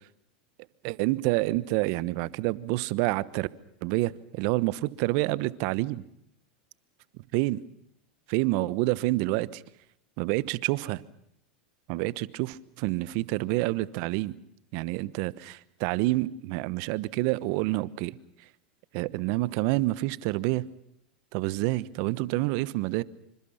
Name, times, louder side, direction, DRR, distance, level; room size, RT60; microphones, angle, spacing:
voice 1, 0.8-3.5 3.8-6.0 7.3-7.6 8.3-9.6 10.2-11.0 11.9-14.3 14.7-18.2 18.9-20.7 21.3-23.0, right 19 dB, 55° right, 1.1 m, -28 dB
28.0 x 26.0 x 5.8 m
hypercardioid pair, 100°, 5 cm